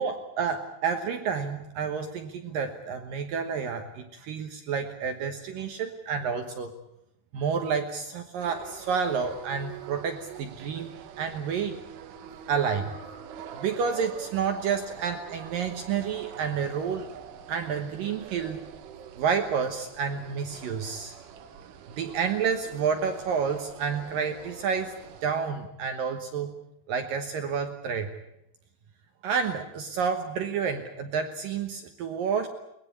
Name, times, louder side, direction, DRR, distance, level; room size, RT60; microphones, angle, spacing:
voice 1, 0.0-6.7 7.3-11.8 12.5-12.9 13.5-17.1 17.5-18.6 19.2-21.1 22.0-24.9 25.2-26.5 26.9-28.1 29.2-32.5, right 6 dB, 70° right, 6 dB, 2.3 m, -29 dB
sound 1, 8.4-25.3, right 8 dB, 85° right, 3.9 m, -45 dB
22.0 x 20.5 x 8.4 m, 0.81 s
omnidirectional pair, 5.5 m